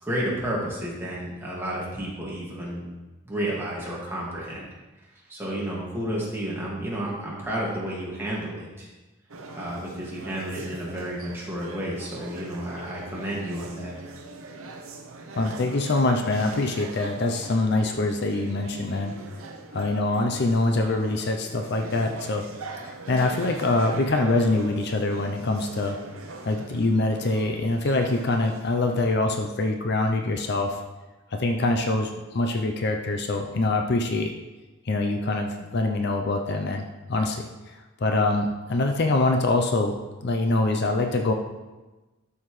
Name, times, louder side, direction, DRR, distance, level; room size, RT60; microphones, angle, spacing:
voice 1, 0.0-2.9 3.2-4.7 5.3-8.9 9.5-13.9, right 1 dB, 10° right, -6 dB, 2.1 m, -31 dB
sound 1, 9.3-29.2, right 3 dB, 75° right, 0.8 m, -41 dB
voice 2, 15.3-19.1 19.7-22.5 22.8-26.0 26.4-30.8 31.3-34.3 34.9-36.8 37.1-37.5 38.0-40.0 40.2-41.3, left 2 dB, 50° left, 4 dB, 0.6 m, -24 dB
12.5 x 5.7 x 3.2 m, 1.1 s
head